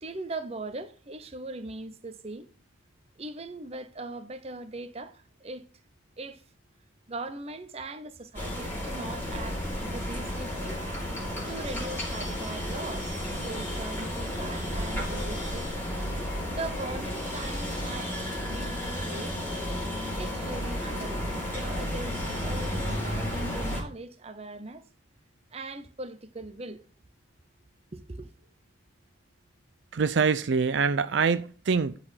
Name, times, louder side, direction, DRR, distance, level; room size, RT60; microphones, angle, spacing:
voice 1, 0.0-2.5 3.2-5.6 6.2-6.4 7.1-10.8 11.5-15.7 16.5-18.1 18.4-19.4 20.1-24.8 25.5-26.8 27.9-28.3, right 2 dB, 30° right, 0.7 m, -40 dB
sound 1, 8.3-23.8, equal, 10° left, 2.7 m, -32 dB
voice 2, 29.9-32.0, right 5 dB, 65° right, 0.4 m, -25 dB
10.5 x 4.1 x 5.7 m
head